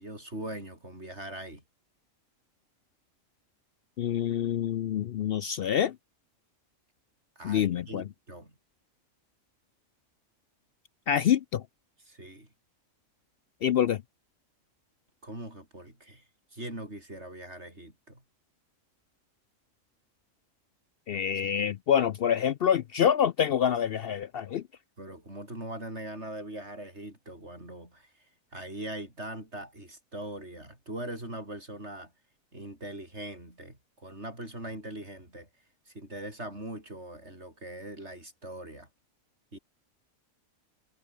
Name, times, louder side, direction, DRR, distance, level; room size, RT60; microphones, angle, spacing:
voice 1, 0.0-1.6 7.4-8.5 12.1-12.5 15.2-16.2 16.5-18.2 25.0-28.1 28.5-32.1 32.5-35.5 35.9-38.9 39.5-39.6, right 1 dB, 55° right, 8.4 m, -41 dB
voice 2, 4.0-6.0 7.4-8.1 11.1-11.6 13.6-14.0 21.1-24.6, left 9 dB, 65° left, 0.6 m, -26 dB
omnidirectional pair, 1.4 m